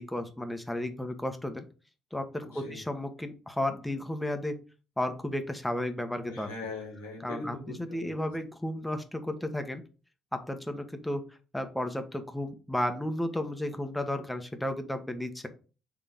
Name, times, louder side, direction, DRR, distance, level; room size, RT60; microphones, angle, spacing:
voice 1, 0.0-1.6 2.1-4.6 5.0-6.5 7.2-9.8 10.3-11.2 11.5-15.5, left 1 dB, 10° left, 6 dB, 1.4 m, -33 dB
voice 2, 2.4-2.8 6.3-8.1, left 3 dB, 80° left, -1 dB, 2.1 m, -41 dB
5.5 x 3.8 x 5.2 m, 0.34 s
figure-of-eight pair, 45°, 0 cm